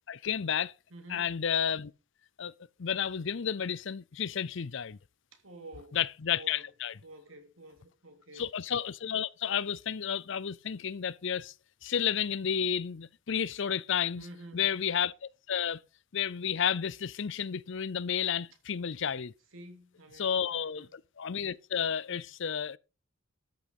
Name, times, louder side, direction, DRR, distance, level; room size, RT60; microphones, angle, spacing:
voice 1, 0.1-0.7 1.1-1.9 2.4-2.5 2.8-5.0 5.9-6.9 8.4-11.5 11.8-14.3 14.5-15.1 15.5-15.8 16.1-19.3 20.2-22.8, left 8 dB, 65° left, 0.6 m, -31 dB
voice 2, 0.9-1.4 5.3-6.0 6.3-6.7 7.0-8.5 14.2-14.8 19.5-20.9, right 1 dB, 85° right, 3.0 m, -50 dB
13.0 x 6.2 x 5.3 m
head